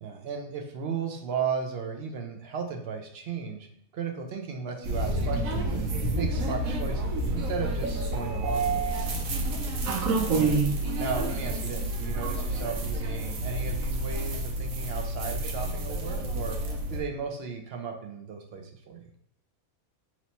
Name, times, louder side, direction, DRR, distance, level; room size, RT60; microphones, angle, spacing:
voice 1, 0.0-3.7 3.9-5.9 6.1-9.1 10.3-19.0, right 6 dB, 60° right, 3 dB, 0.7 m, -35 dB
sound 1, 4.8-17.0, right 2 dB, 80° right, 1.1 m, -29 dB
3.1 x 3.0 x 4.1 m, 0.73 s
omnidirectional pair, 1.5 m